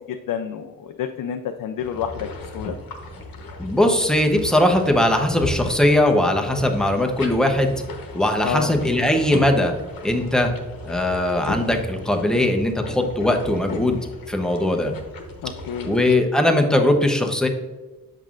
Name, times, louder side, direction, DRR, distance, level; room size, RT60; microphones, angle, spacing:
voice 1, 0.0-2.7 8.4-8.7 15.4-15.9, left 8 dB, 70° left, 6 dB, 0.5 m, -29 dB
sound 1, 1.8-16.2, left 2 dB, 85° left, 1.1 m, -36 dB
voice 2, 3.6-7.8 8.1-9.7 10.0-10.5 10.8-14.0 14.3-14.9 15.8-17.5, left 1 dB, ahead, 3 dB, 0.7 m, -20 dB
7.4 x 5.4 x 2.5 m, 1.3 s
cardioid pair, 90°, 34 cm